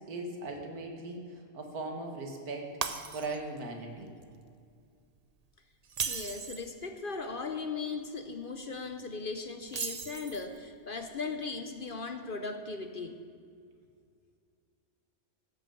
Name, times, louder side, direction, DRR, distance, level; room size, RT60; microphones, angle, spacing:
voice 1, 0.1-2.7 3.1-4.1, right 2 dB, 90° right, 3 dB, 2.1 m, -39 dB
Shatter, 2.8-3.6 4.0-4.2 5.8-6.7 9.7-10.6, right 6 dB, 50° right, 0.4 m, -36 dB
voice 2, 6.1-13.2, left 4 dB, 50° left, 7 dB, 0.7 m, -38 dB
14.5 x 6.9 x 7.0 m, 2.3 s
omnidirectional pair, 1.5 m